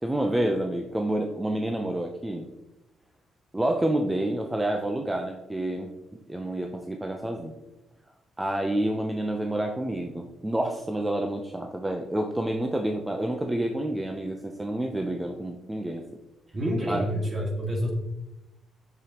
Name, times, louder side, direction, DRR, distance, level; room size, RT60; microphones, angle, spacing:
voice 1, 0.0-2.5 3.5-5.9 6.3-7.5 8.4-16.0 16.9-17.1, right 1 dB, 10° right, 3 dB, 0.6 m, -28 dB
voice 2, 16.5-17.9, equal, 35° right, 0 dB, 2.0 m, -28 dB
6.9 x 6.7 x 3.0 m, 0.96 s
cardioid pair, 90°, 0 cm